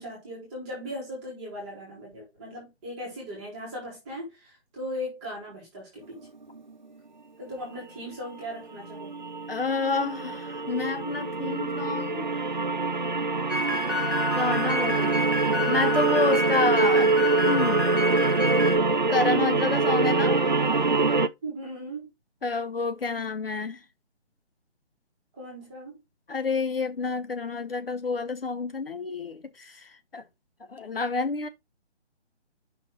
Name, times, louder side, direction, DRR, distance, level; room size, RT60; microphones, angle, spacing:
voice 1, 0.0-6.2 7.4-9.2 21.4-22.1 25.4-26.0, equal, 5° right, 1.8 m, -38 dB
sound 1, 6.2-6.6 8.4-8.5 8.8-21.3, right 3 dB, 45° right, 0.4 m, -25 dB
voice 2, 9.5-12.4 14.3-17.1 17.5-17.8 19.1-20.4 22.4-23.8 26.3-30.2 30.7-31.5, left 4 dB, 55° left, 0.8 m, -29 dB
sound 2, 13.5-18.8, left 2 dB, 15° left, 1.2 m, -30 dB
5.7 x 4.0 x 6.0 m
hypercardioid pair, 180°, 34 cm